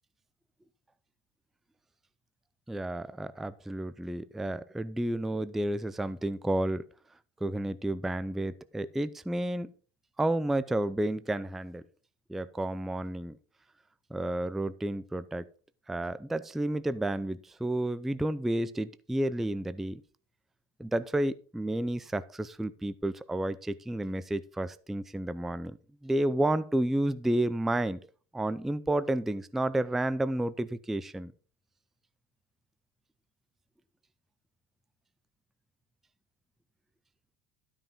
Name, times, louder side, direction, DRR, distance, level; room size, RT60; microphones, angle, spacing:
voice 1, 2.7-6.8 7.4-9.7 10.2-11.8 12.3-13.4 14.1-15.5 15.9-20.0 20.8-25.8 26.0-28.0 28.3-31.3, right 1 dB, ahead, 16 dB, 0.4 m, -31 dB
12.5 x 5.6 x 5.2 m, 0.40 s
cardioid pair, 125°, 29 cm